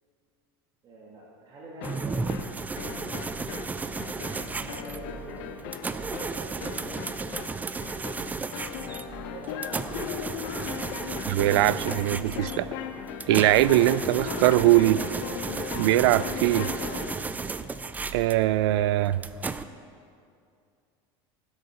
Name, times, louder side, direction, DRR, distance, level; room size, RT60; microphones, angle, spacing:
voice 1, 0.8-2.3 3.8-7.2 9.1-10.2, right 2 dB, 35° right, -4 dB, 1.9 m, -46 dB
sound 1, 1.8-17.3, left 8 dB, 70° left, 1.0 m, -38 dB
sound 2, 1.8-19.6, right 4 dB, 10° right, 0.4 m, -34 dB
voice 2, 11.3-12.7 13.3-15.0 15.8-16.7 18.1-19.2, right 15 dB, 85° right, 18 dB, 0.4 m, -21 dB
16.0 x 7.9 x 5.7 m, 2.4 s
supercardioid pair, 130°, 13 cm